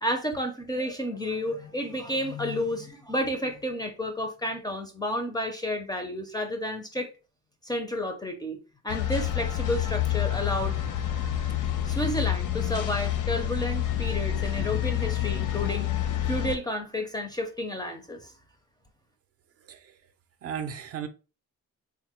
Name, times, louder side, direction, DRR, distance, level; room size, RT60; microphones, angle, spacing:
voice 1, 0.0-7.1 7.6-10.8 11.9-15.9 16.3-18.3, left 1 dB, 15° left, 0.4 m, -31 dB
sound 1, 8.9-16.6, left 11 dB, 70° left, 0.6 m, -28 dB
voice 2, 20.4-21.1, right 8 dB, 50° right, 0.4 m, -35 dB
3.5 x 2.2 x 4.2 m
cardioid pair, 175°, 32 cm